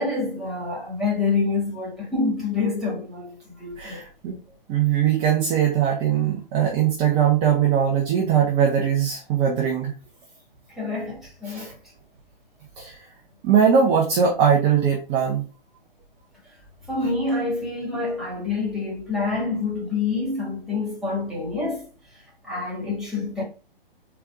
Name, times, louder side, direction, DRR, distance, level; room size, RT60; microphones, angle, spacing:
voice 1, 0.0-4.0 10.8-11.7 16.9-21.8 22.5-23.4, left 3 dB, ahead, 1.8 m, -27 dB
voice 2, 3.8-4.4 4.7-9.9 11.5-11.7 12.8-13.0 13.4-15.4, right 8 dB, 20° right, 0.8 m, -20 dB
4.0 x 3.5 x 3.5 m
figure-of-eight pair, 130°, 29 cm